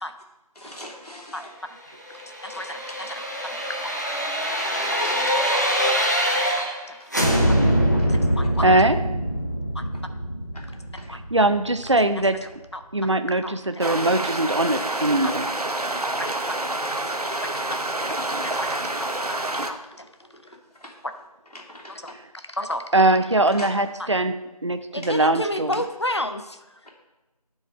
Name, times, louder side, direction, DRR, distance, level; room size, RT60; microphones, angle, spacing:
voice 1, 0.5-1.6 2.5-2.7 4.5-5.8 8.0-8.3 10.5-10.6 11.0-11.1 17.5-17.7 18.1-18.2 19.9-21.0 21.5-22.0 23.4-23.7 25.0-25.1, left 1 dB, 80° left, -1 dB, 2.7 m, -42 dB
voice 2, 1.3-1.8 2.4-3.1 3.4-4.4 4.9-5.0 6.0-6.1 6.3-7.3 7.9-8.9 9.7-9.9 11.1-11.2 12.7-13.1 13.4-13.8 15.2-15.3 16.2-16.6 17.4-17.5 18.4-19.1 19.7-20.1 22.0-22.1 22.6-22.8 24.9-26.4, left 1 dB, 45° left, 8 dB, 0.6 m, -33 dB
sound 1, 2.1-6.8 7.1-12.0 12.3-12.4, equal, 30° left, 0.9 m, -24 dB
voice 3, 8.6-9.0 11.3-12.4 12.9-15.5 22.9-24.3 24.6-25.7, right 2 dB, 50° right, 10 dB, 0.5 m, -21 dB
sound 2, 13.8-19.7, right 2 dB, 75° right, 1.0 m, -28 dB
8.2 x 4.8 x 7.4 m, 1.1 s
figure-of-eight pair, 175°, 20 cm